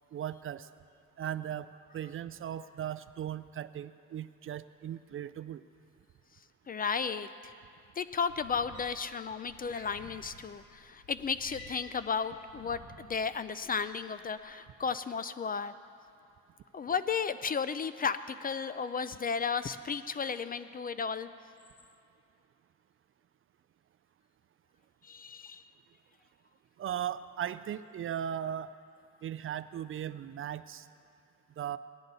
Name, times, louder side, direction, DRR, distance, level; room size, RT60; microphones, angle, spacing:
voice 1, 0.1-0.7 1.2-5.6 26.8-28.7 29.2-30.8 31.6-31.8, right 10 dB, 45° right, 15 dB, 0.4 m, -37 dB
voice 2, 6.7-7.5 8.0-15.7 16.7-21.3 25.0-25.6, left 6 dB, 30° left, 13 dB, 0.4 m, -34 dB
sound 1, 8.1-13.8 14.2-14.5, left 2 dB, 75° left, 2.0 m, -52 dB
17.5 x 11.0 x 4.0 m, 2.6 s
cardioid pair, 90°, 30 cm